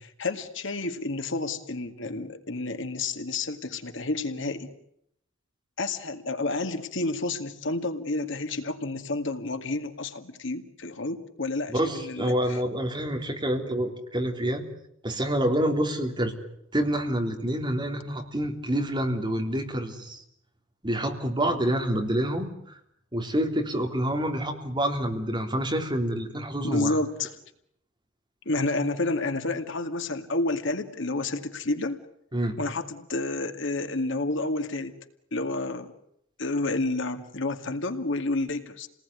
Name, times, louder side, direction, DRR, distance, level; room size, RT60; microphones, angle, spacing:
voice 1, 0.0-4.7 5.8-12.3 26.6-27.3 28.5-32.0 32.6-34.9 35.3-35.9 36.4-38.9, left 2 dB, 70° left, 7 dB, 2.2 m, -30 dB
voice 2, 11.7-14.6 15.0-16.3 16.7-20.2 20.8-22.8 23.1-26.9 32.3-32.6, right 1 dB, 25° right, 3 dB, 3.5 m, -27 dB
29.5 x 19.5 x 9.8 m, 0.75 s
head